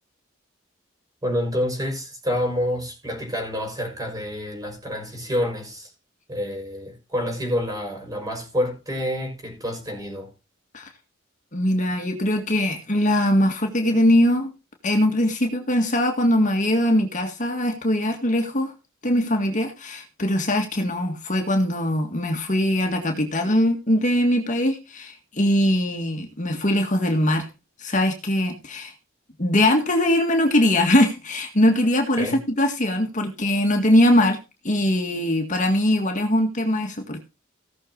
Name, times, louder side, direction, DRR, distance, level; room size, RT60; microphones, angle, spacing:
voice 1, 1.2-5.9 6.3-10.3 32.2-32.4, equal, 20° right, 5.4 m, -28 dB
voice 2, 11.5-14.5 14.8-18.7 19.0-27.5 27.8-28.9 29.4-34.4 34.6-37.2, left 1 dB, 40° left, 1.9 m, -21 dB
17.5 x 6.6 x 3.9 m
head